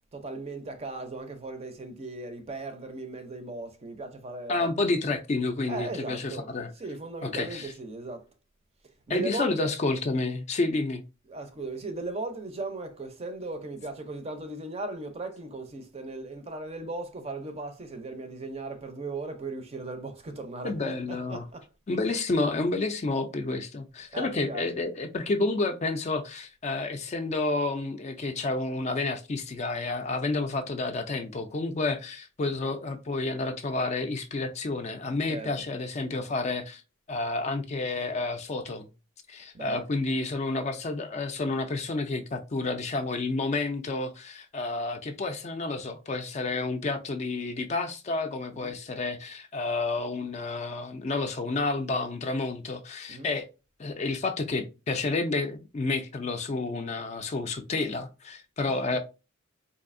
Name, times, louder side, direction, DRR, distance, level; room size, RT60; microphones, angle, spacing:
voice 1, 0.1-4.7 5.7-8.3 9.1-9.8 11.2-21.7 22.1-22.2 24.1-24.7 35.2-35.6 39.5-39.8 48.5-48.8 53.1-53.4 58.6-59.0, right 2 dB, 30° right, 0.5 m, -37 dB
voice 2, 4.5-6.7 7.2-7.7 9.1-11.0 20.6-21.4 21.9-36.8 37.1-38.9 39.3-53.5 53.8-59.0, left 3 dB, 35° left, 0.4 m, -30 dB
4.0 x 2.6 x 2.5 m
head